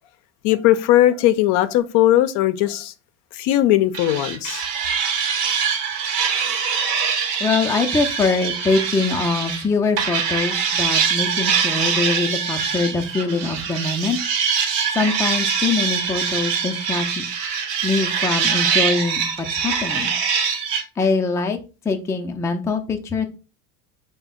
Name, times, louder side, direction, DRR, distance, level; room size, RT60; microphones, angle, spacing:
voice 1, 0.4-2.9 3.3-4.6, left 13 dB, 60° left, 0.5 m, -18 dB
sound 1, 3.9-9.6 10.0-20.8, right 6 dB, 75° right, 1.0 m, -23 dB
voice 2, 7.4-14.2 14.9-17.2 17.8-19.3 19.6-20.1 21.0-21.6 21.9-23.3, left 4 dB, 5° left, 0.4 m, -23 dB
3.3 x 2.2 x 3.7 m
hypercardioid pair, 75°, 46 cm